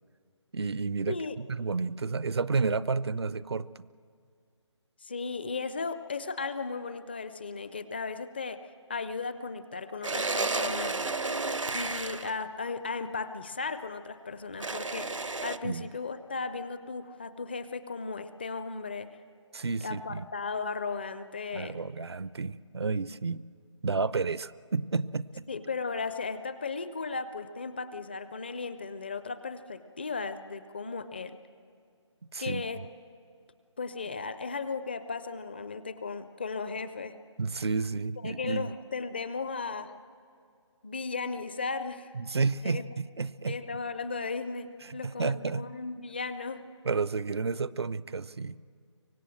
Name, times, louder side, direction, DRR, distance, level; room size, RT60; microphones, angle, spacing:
voice 1, 0.5-3.8 15.6-15.9 19.5-20.3 21.5-23.4 23.8-25.5 32.3-32.9 37.4-38.7 42.1-43.6 44.8-45.6 46.8-48.6, right 4 dB, 60° right, 18 dB, 0.5 m, -31 dB
voice 2, 1.1-1.4 5.0-11.0 11.7-19.1 19.8-21.8 25.5-31.4 32.4-32.8 33.8-37.1 38.2-39.9 40.8-42.1 42.6-42.8 43.5-46.6, left 4 dB, 20° left, 12 dB, 0.5 m, -36 dB
sound 1, 10.0-12.4 14.6-15.6, right 3 dB, 80° right, 0.9 m, -32 dB
24.5 x 19.0 x 7.6 m, 2.2 s
figure-of-eight pair, 155°, 16 cm